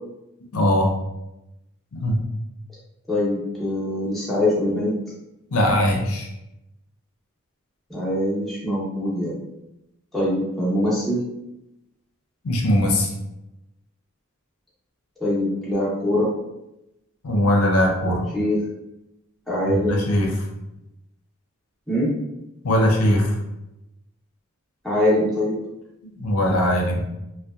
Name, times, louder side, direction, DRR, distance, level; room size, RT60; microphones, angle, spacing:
voice 1, 0.5-1.0 1.9-2.2 5.5-6.3 12.4-13.1 17.2-18.3 19.7-20.5 22.6-23.4 26.0-27.0, equal, 85° left, 1 dB, 0.5 m, -20 dB
voice 2, 3.1-4.9 7.9-9.4 10.1-11.2 15.2-16.3 18.3-18.6 19.5-20.0 21.9-22.1 24.8-25.6, left 1 dB, ahead, -8 dB, 0.6 m, -23 dB
2.7 x 2.1 x 2.3 m, 0.91 s
head